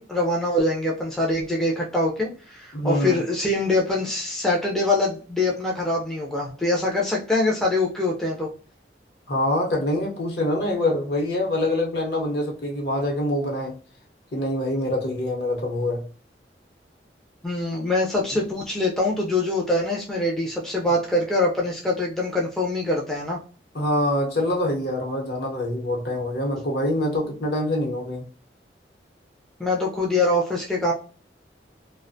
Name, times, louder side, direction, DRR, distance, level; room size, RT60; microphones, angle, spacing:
voice 1, 0.0-8.5 17.4-23.4 29.6-30.9, left 2 dB, 5° left, 0.4 m, -24 dB
voice 2, 2.7-3.2 9.3-13.8 14.3-16.0 18.3-18.5 23.7-28.2, left 1 dB, 65° left, 0.8 m, -25 dB
2.4 x 2.1 x 2.5 m
head